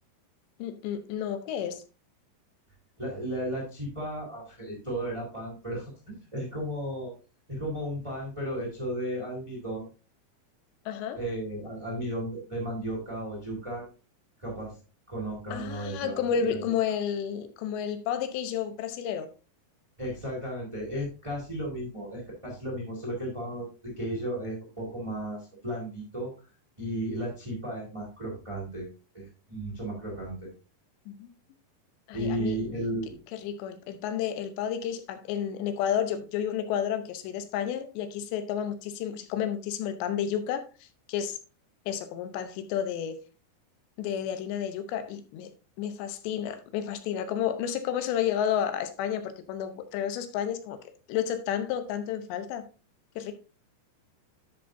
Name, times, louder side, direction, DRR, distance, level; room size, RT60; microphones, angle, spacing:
voice 1, 0.6-1.8 10.9-11.2 15.5-19.3 31.1-31.3 32.1-32.6 33.3-40.6 41.1-41.4 41.9-43.2 44.0-45.5 45.8-50.8 51.1-52.7 53.2-53.3, left 9 dB, 85° left, 3.2 m, -31 dB
voice 2, 3.0-7.1 7.5-9.8 11.1-13.9 14.4-14.7 15.1-16.7 20.0-26.3 26.8-28.9 29.1-30.5 32.1-33.2, right 1 dB, 10° right, 2.7 m, -34 dB
10.5 x 6.9 x 2.6 m
omnidirectional pair, 4.9 m